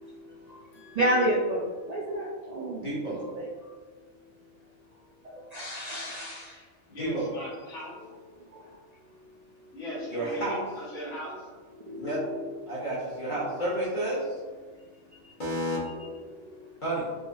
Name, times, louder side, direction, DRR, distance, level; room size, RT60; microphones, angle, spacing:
voice 1, 0.0-3.5 5.3-6.6 8.5-8.6 9.6-9.7 11.8-12.7 13.3-13.4 15.2-15.3 16.0-16.1 16.5-16.6, right 1 dB, 80° right, -3 dB, 0.3 m, -32 dB
voice 2, 2.7-3.2 7.0-7.3 10.1-10.6 12.0-12.2 12.7-14.3 15.4-15.8 16.8-17.1, right 1 dB, 45° left, -7 dB, 0.9 m, -30 dB
voice 3, 6.9-8.0 9.7-11.5, equal, 80° left, -5 dB, 1.5 m, -39 dB
3.7 x 3.2 x 2.5 m, 1.4 s
omnidirectional pair, 1.3 m